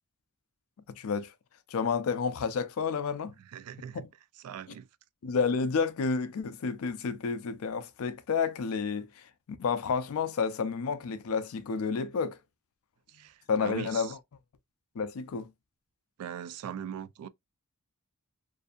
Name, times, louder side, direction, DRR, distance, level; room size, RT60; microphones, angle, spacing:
voice 1, 0.9-1.3 1.7-3.3 3.9-4.1 5.2-12.4 13.5-14.2 15.0-15.5, left 5 dB, 70° left, 0.4 m, -30 dB
voice 2, 3.4-4.1 4.3-4.9 13.1-14.1 16.2-17.3, right 8 dB, 80° right, 0.3 m, -41 dB
2.5 x 2.5 x 2.3 m
head